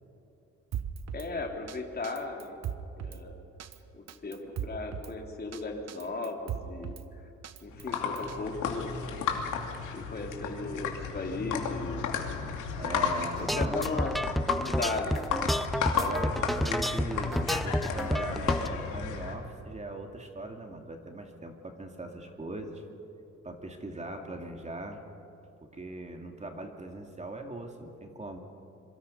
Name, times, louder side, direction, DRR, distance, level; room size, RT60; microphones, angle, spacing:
Drum kit, 0.7-1.3 1.7-1.8 2.0-3.2 3.6-3.8 4.1-5.1 5.5-5.6 5.9-7.0 7.4-8.4, right 9 dB, 60° right, 1.2 m, -38 dB
voice 1, 1.1-2.6 3.0-3.4 3.9-7.2 7.6-8.9 9.9-12.0 13.4-14.2 14.5-15.3, left 3 dB, 30° left, 1 dB, 3.5 m, -36 dB
Pickleball Lincoln Nebraska, 7.7-19.3, left 6 dB, 80° left, 2.8 m, -33 dB
voice 2, 12.7-13.8 16.0-22.8 23.4-25.0 25.6-28.4, right 2 dB, 25° right, 3 dB, 2.6 m, -40 dB
sound 1, 13.4-18.7, equal, ahead, 0.6 m, -30 dB
26.5 x 23.5 x 5.5 m, 2.8 s
cardioid pair, 90°, 30 cm